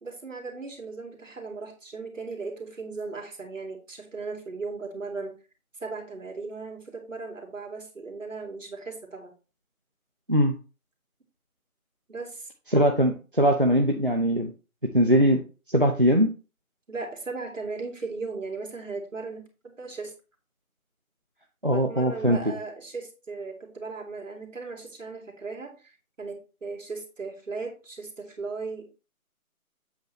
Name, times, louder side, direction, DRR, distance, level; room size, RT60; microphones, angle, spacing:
voice 1, 0.0-5.4 5.8-9.3 12.1-12.5 16.9-20.1 21.7-28.9, right 3 dB, 60° right, 1 dB, 2.4 m, -37 dB
voice 2, 12.7-14.5 14.9-15.4 15.7-16.3 21.6-22.4, equal, 40° right, 3 dB, 0.7 m, -21 dB
8.1 x 3.2 x 6.0 m, 0.33 s
figure-of-eight pair, 180°, 44 cm